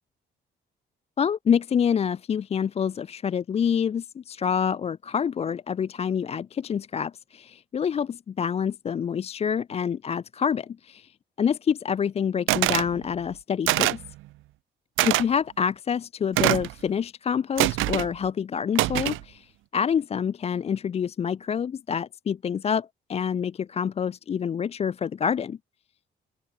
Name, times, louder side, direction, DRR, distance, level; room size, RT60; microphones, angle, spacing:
voice 1, 1.2-11.1 11.4-14.0 15.0-25.6, left 7 dB, 30° left, 0.4 m, -27 dB
sound 1, 12.5-12.9 13.7-14.1 15.0-15.2 16.4-16.7 17.6-18.1 18.8-19.2, right 18 dB, 90° right, 0.6 m, -23 dB
open air
cardioid pair, 90°, 20 cm